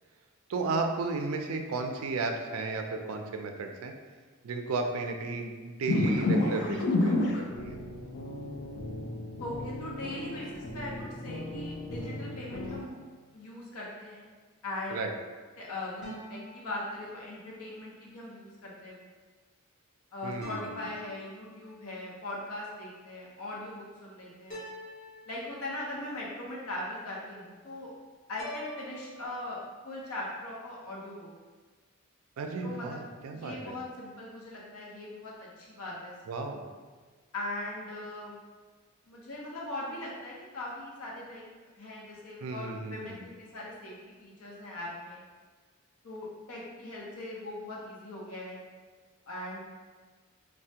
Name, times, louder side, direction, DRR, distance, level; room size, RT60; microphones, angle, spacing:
voice 1, 0.5-3.9 4.4-7.8 14.9-15.1 20.2-20.7 32.4-33.8 36.3-36.6 42.4-43.2, right 3 dB, 75° right, 4 dB, 0.3 m, -34 dB
sound 1, 5.9-12.8, left 2 dB, 55° left, 0.4 m, -31 dB
voice 2, 9.4-12.9 13.3-14.3 14.6-15.0 15.6-19.1 20.1-24.7 25.3-27.9 28.3-31.3 32.6-33.0 33.3-36.1 37.3-38.4 39.1-41.4 41.7-45.2 46.0-48.6 49.3-49.6, left 1 dB, 90° left, -4 dB, 0.7 m, -40 dB
sound 2, 11.9-13.6 16.0-17.7 20.4-21.9 24.5-26.1 28.4-29.3, left 1 dB, 35° left, 1.2 m, -47 dB
3.2 x 2.1 x 2.8 m, 1.4 s
head